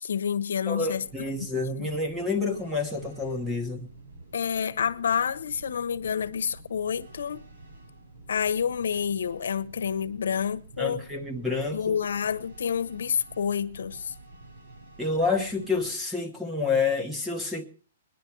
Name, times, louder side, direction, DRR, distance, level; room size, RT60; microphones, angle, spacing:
voice 1, 0.0-1.0 1.8-1.9 4.3-7.4 8.3-11.1 11.7-14.1, left 7 dB, 80° left, 1.0 m, -28 dB
voice 2, 0.7-3.9 10.8-12.0 15.0-17.6, left 4 dB, 5° right, 1.1 m, -28 dB
sound 1, 0.8-16.0, right 2 dB, 50° right, 5.5 m, -49 dB
20.0 x 11.0 x 4.6 m
hypercardioid pair, 175°, 0 cm